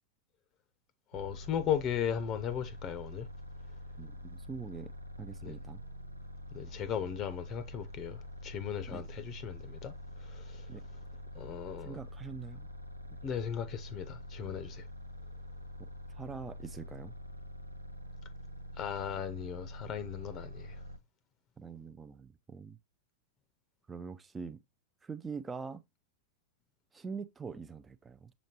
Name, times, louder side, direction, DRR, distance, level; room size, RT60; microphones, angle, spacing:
voice 1, 1.1-3.3 5.4-5.5 6.5-9.9 10.3-10.6 11.4-12.0 13.2-14.9 18.8-20.7, left 9 dB, 35° left, 0.6 m, -37 dB
sound 1, 1.1-21.0, equal, 85° right, 0.7 m, -46 dB
voice 2, 4.0-4.9 5.2-5.8 8.9-9.0 10.7-10.8 11.8-12.7 16.1-17.1 21.6-22.8 23.9-24.6 25.0-25.8 26.9-28.3, right 5 dB, 15° right, 0.4 m, -43 dB
7.1 x 5.1 x 2.9 m
figure-of-eight pair, 90°, 0 cm